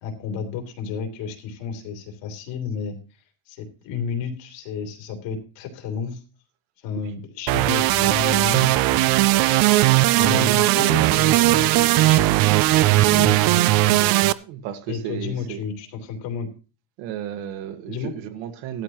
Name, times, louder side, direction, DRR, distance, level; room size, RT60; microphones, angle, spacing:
voice 1, 0.0-3.0 3.5-6.2 6.8-9.3 10.2-12.3 12.8-14.1 14.9-16.5 17.9-18.1, left 6 dB, 65° left, 3.1 m, -31 dB
sound 1, 7.5-14.3, right 17 dB, 50° right, 0.5 m, -18 dB
voice 2, 10.2-10.6 10.9-11.1 14.2-15.6 17.0-18.8, right 10 dB, 65° right, 1.7 m, -33 dB
15.0 x 12.5 x 3.0 m
cardioid pair, 175°, 48 cm